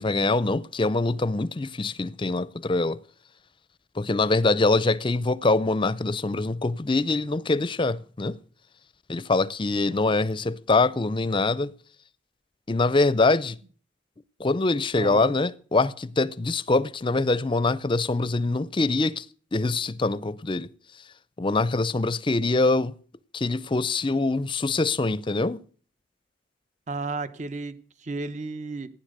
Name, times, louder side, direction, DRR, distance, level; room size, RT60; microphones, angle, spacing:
voice 1, 0.0-3.0 4.0-8.4 9.1-11.7 12.7-13.6 14.4-19.2 19.5-20.7 21.4-22.9 23.3-25.6, left 3 dB, 25° left, 0.6 m, -24 dB
voice 2, 15.0-15.3 26.9-28.9, right 3 dB, 40° right, 1.0 m, -33 dB
15.0 x 10.5 x 6.6 m
head